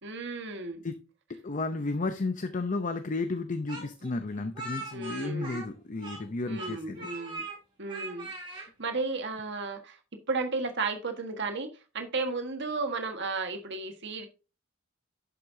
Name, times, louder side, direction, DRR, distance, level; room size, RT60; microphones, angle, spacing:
voice 1, 0.0-0.9 4.9-5.6 6.5-7.4 7.8-10.0 10.3-11.7 11.9-14.3, right 3 dB, 60° right, 6 dB, 1.5 m, -34 dB
voice 2, 1.3-7.0, left 3 dB, 40° left, 9 dB, 0.6 m, -33 dB
Speech, 3.7-6.3 6.5-7.6 7.9-8.7, right 2 dB, 25° right, 5.0 m, -40 dB
11.0 x 7.7 x 2.7 m, 0.31 s
head